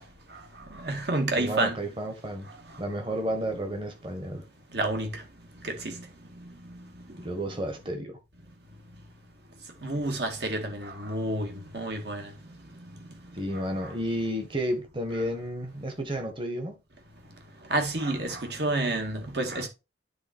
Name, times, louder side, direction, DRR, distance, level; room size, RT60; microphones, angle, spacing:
voice 1, 0.8-1.8 4.7-5.1 5.6-5.9 9.8-12.3 17.7-19.7, right 2 dB, 60° right, 2.0 m, -29 dB
voice 2, 1.4-2.5 2.8-4.4 7.2-8.2 13.3-16.8, equal, 25° right, 1.5 m, -32 dB
9.5 x 3.9 x 4.4 m
head